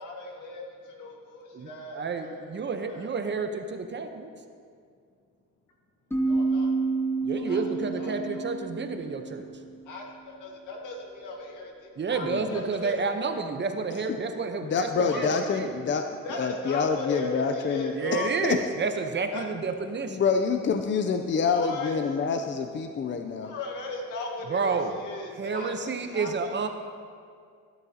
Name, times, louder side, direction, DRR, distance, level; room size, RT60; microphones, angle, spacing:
voice 1, 0.0-2.4 2.9-3.1 6.3-6.7 7.4-8.5 9.9-13.0 14.9-15.3 16.2-18.6 19.3-19.5 21.4-21.9 23.4-26.5, left 2 dB, 85° left, 0 dB, 1.8 m, -37 dB
voice 2, 1.5-4.3 7.2-9.5 12.0-15.7 17.9-20.2 24.5-24.9 25.4-26.7, right 4 dB, 35° right, 6 dB, 0.9 m, -30 dB
sound 1, 6.1-9.7, right 3 dB, 10° left, 1.1 m, -29 dB
voice 3, 12.2-12.6 14.6-16.1 16.4-17.9 18.4-18.6 20.1-23.5, left 5 dB, 40° left, 6 dB, 0.6 m, -27 dB
14.5 x 8.7 x 2.8 m, 2.2 s
cardioid pair, 90°, 30 cm